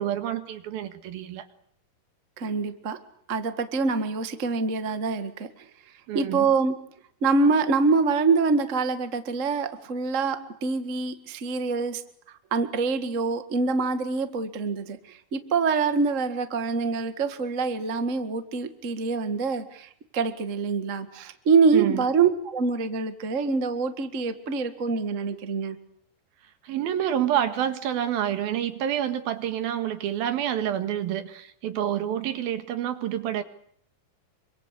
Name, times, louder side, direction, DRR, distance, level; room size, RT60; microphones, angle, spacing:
voice 1, 0.0-1.5 6.1-6.5 21.7-22.0 26.6-33.4, right 10 dB, 75° right, 9 dB, 3.5 m, -28 dB
voice 2, 2.4-3.0 3.3-5.5 6.1-6.7 7.2-12.0 12.5-25.8, right 4 dB, 40° right, 9 dB, 1.1 m, -25 dB
27.0 x 24.5 x 8.3 m, 0.64 s
omnidirectional pair, 4.4 m